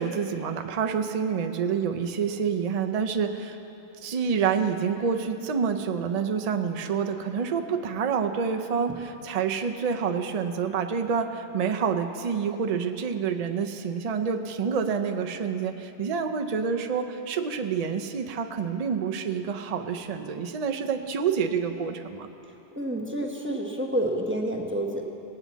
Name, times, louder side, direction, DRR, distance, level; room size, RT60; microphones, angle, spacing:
voice 1, 0.0-3.6 4.0-22.3, right 6 dB, 45° right, 6 dB, 0.6 m, -28 dB
voice 2, 22.8-25.0, right 1 dB, 10° right, 0 dB, 1.0 m, -28 dB
18.5 x 9.0 x 4.1 m, 2.9 s
omnidirectional pair, 1.1 m